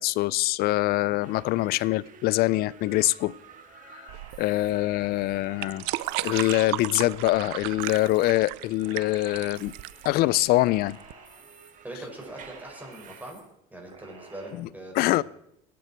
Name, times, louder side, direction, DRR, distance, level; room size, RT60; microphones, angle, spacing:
voice 1, 0.0-3.3 3.9-5.9 6.2-9.7 10.0-11.0 14.6-14.7 15.0-15.2, left 17 dB, 60° left, 0.5 m, -24 dB
sound 1, 1.2-13.3, right 7 dB, 45° right, 1.9 m, -52 dB
Papatone Pictures Klaxon, 4.1-4.7 5.3-6.5 7.1-8.3 8.8-10.0 10.5-11.7 12.2-13.4 13.9-14.5, right 2 dB, 30° right, 6.0 m, -52 dB
sound 2, 4.1-11.1, right 20 dB, 70° right, 0.6 m, -35 dB
voice 2, 11.8-13.4 13.7-15.2, right 1 dB, 10° right, 5.7 m, -41 dB
23.0 x 9.4 x 4.5 m
supercardioid pair, 95°, 18 cm